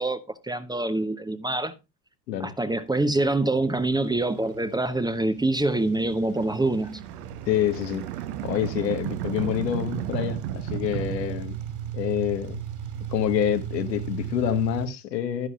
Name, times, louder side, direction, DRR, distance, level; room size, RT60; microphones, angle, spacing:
voice 1, 0.0-1.7 2.4-7.0, right 2 dB, 10° right, 0.7 m, -25 dB
sound 1, 2.9-14.9, right 10 dB, 50° right, 3.0 m, -37 dB
sound 2, 6.4-12.2, right 11 dB, 65° right, 1.0 m, -34 dB
voice 2, 7.5-8.0 8.4-11.6 11.9-12.6 13.1-15.5, left 10 dB, 85° left, 1.4 m, -27 dB
11.0 x 11.0 x 2.3 m
hypercardioid pair, 85°, 49 cm